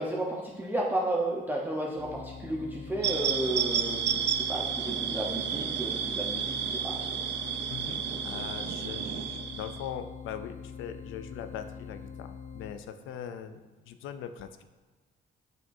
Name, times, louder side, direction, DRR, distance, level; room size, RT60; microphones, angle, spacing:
voice 1, 0.0-7.0, right 1 dB, 10° right, -3 dB, 1.0 m, -33 dB
sound 1, 2.0-12.7, left 6 dB, 35° left, 0.7 m, -44 dB
sound 2, 3.0-9.9, right 8 dB, 60° right, 0.6 m, -31 dB
voice 2, 7.7-13.6 13.9-14.6, left 8 dB, 85° left, 10 dB, 0.5 m, -41 dB
7.1 x 5.8 x 2.7 m, 1.3 s
cardioid pair, 90°, 20 cm